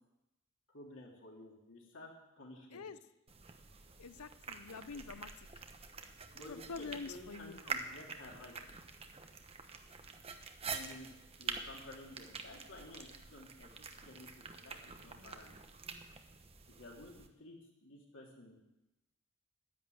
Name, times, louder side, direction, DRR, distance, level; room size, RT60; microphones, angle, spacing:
voice 1, 0.7-2.8 6.3-8.6 10.7-11.1 11.4-15.6 16.7-18.6, left 1 dB, 60° left, -1 dB, 3.1 m, -53 dB
sound 1, 3.3-17.3, right 4 dB, 25° right, 0.9 m, -47 dB
voice 2, 4.0-5.3 6.5-7.6, left 4 dB, 85° left, 14 dB, 0.7 m, -46 dB
10.5 x 10.5 x 8.0 m, 0.94 s
head